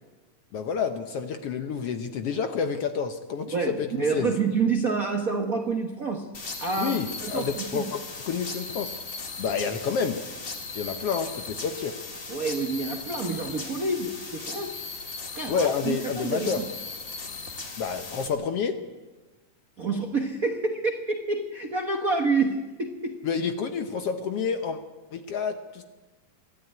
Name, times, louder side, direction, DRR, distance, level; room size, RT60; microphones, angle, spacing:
voice 1, 0.5-4.3 6.8-9.0 9.4-10.2 10.7-12.0 15.5-16.6 17.8-18.8 23.2-24.8 25.1-25.8, left 6 dB, 65° left, 8 dB, 1.5 m, -29 dB
voice 2, 3.5-6.3 6.6-7.8 12.3-14.8 15.3-16.7 19.8-23.2, right 4 dB, 60° right, 4 dB, 0.9 m, -28 dB
sound 1, 6.3-18.3, left 4 dB, 30° left, 1.9 m, -37 dB
22.5 x 14.0 x 9.5 m, 1.2 s
omnidirectional pair, 3.7 m